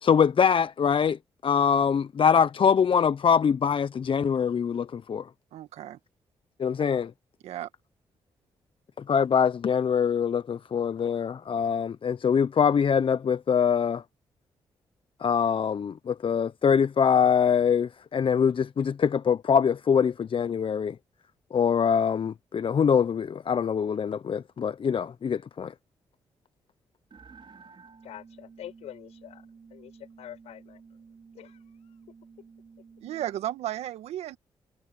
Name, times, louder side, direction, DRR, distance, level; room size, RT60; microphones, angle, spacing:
voice 1, 0.0-5.3 6.6-7.1 9.0-14.0 15.2-21.0 21.5-25.7, left 7 dB, 55° left, 0.9 m, -24 dB
voice 2, 5.5-6.0 7.4-7.7 33.0-34.4, right 12 dB, 80° right, 1.9 m, -34 dB
sound 1, 27.1-33.5, right 5 dB, 50° right, 5.0 m, -52 dB
voice 3, 28.0-30.8 31.3-31.7, left 12 dB, 75° left, 7.1 m, -46 dB
hypercardioid pair, 40°, 11 cm